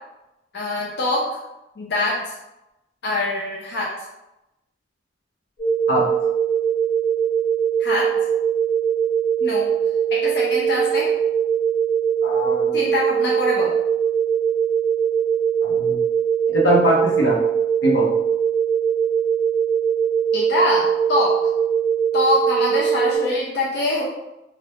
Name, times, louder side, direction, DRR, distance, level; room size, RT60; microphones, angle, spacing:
voice 1, 0.5-1.3 1.8-2.3 3.0-4.1 7.8-8.1 9.4-9.7 10.1-11.1 12.7-13.7 20.3-21.4 22.1-24.0, left 2 dB, 60° left, -4 dB, 0.6 m, -23 dB
sound 1, 5.6-23.2, right 8 dB, 40° left, 1.1 m, -21 dB
voice 2, 12.2-12.8 15.6-16.0 16.5-17.4 17.8-18.1, equal, 85° left, -4 dB, 1.0 m, -21 dB
2.8 x 2.4 x 3.4 m, 0.94 s
head